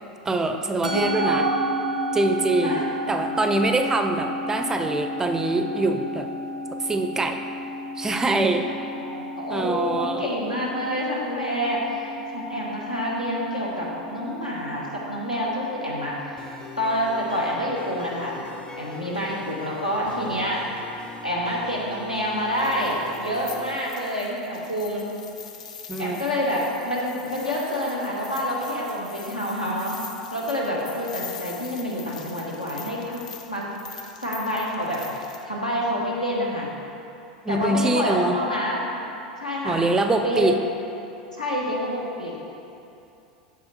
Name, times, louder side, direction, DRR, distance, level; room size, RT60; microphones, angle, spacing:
voice 1, 0.2-1.5 2.1-2.8 3.1-6.3 6.7-7.4 8.0-8.9 9.5-10.2 25.9-26.2 37.5-38.4 39.6-40.6, right 2 dB, 15° right, 7 dB, 0.4 m, -24 dB
Musical instrument, 0.8-19.3, equal, 85° right, 0.5 m, -34 dB
voice 2, 0.9-1.7 2.6-2.8 8.7-16.4 16.8-18.4 18.7-20.6 21.2-25.1 26.0-30.0 30.3-33.2 33.5-33.7 34.2-36.7 37.5-38.9 39.4-39.8 40.2-40.5 41.4-42.4, equal, 90° left, -5 dB, 1.2 m, -27 dB
sound 1, 16.4-23.8, left 4 dB, 25° left, 0.7 m, -42 dB
sound 2, 22.5-35.4, left 6 dB, 65° left, 0.5 m, -43 dB
8.6 x 6.5 x 3.0 m, 2.7 s
figure-of-eight pair, 85°, 4 cm